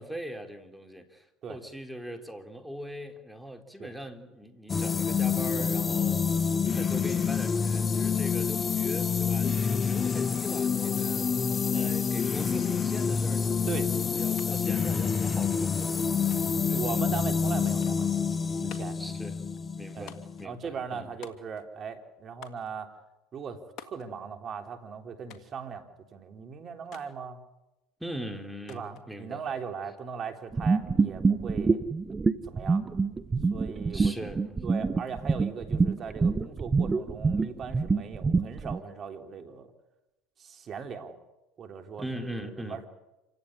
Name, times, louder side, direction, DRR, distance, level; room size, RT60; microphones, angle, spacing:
voice 1, 0.0-11.3 11.7-17.0 19.0-19.4 19.8-21.1 28.0-29.4 33.9-34.5 42.0-42.8, equal, ahead, 5 dB, 3.4 m, -41 dB
sound 1, 4.7-20.4, left 6 dB, 25° left, 0.8 m, -27 dB
sound 2, 14.4-14.5 14.8-15.5 16.3-16.7 17.8-18.1 18.7-19.1 20.1-20.5 21.2-21.8 22.4-22.7 23.8-24.1 25.3-25.6 26.9-27.1 28.7-29.1, left 9 dB, 50° left, 2.8 m, -49 dB
voice 2, 16.6-18.2 18.6-19.0 19.9-20.1 20.4-22.9 23.3-27.4 28.7-31.8 32.4-32.8 33.5-34.3 34.6-39.7 40.4-41.2 41.6-42.9, right 6 dB, 40° right, 6 dB, 3.6 m, -39 dB
sound 3, 30.5-38.8, right 4 dB, 20° right, 0.9 m, -26 dB
27.5 x 16.5 x 10.0 m, 0.98 s
hypercardioid pair, 90°, 0 cm